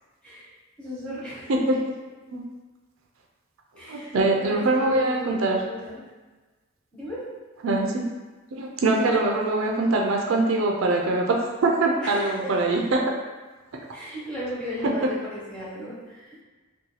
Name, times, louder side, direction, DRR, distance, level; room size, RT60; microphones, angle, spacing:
voice 1, 0.8-1.6 3.7-6.0 6.9-7.2 8.9-9.0 12.0-12.5 13.9-16.4, equal, 5° left, -9 dB, 1.0 m, -36 dB
voice 2, 3.9-5.6 7.6-8.1 8.5-13.0, right 2 dB, 70° right, 0 dB, 0.4 m, -23 dB
2.7 x 2.3 x 3.9 m, 1.3 s
head